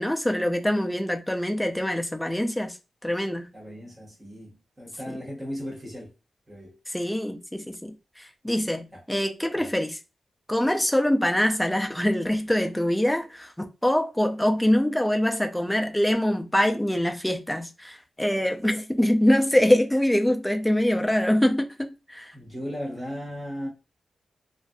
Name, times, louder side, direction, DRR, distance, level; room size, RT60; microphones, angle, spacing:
voice 1, 0.0-2.8 3.0-3.5 5.1-5.2 6.9-10.0 10.5-21.7 22.1-22.3, left 1 dB, 5° left, 0.4 m, -24 dB
voice 2, 3.5-6.1 6.5-6.8 8.9-9.0 9.5-9.7 22.3-23.7, equal, 15° right, 1.2 m, -36 dB
2.5 x 2.4 x 2.2 m
wide cardioid pair, 115°, 0 cm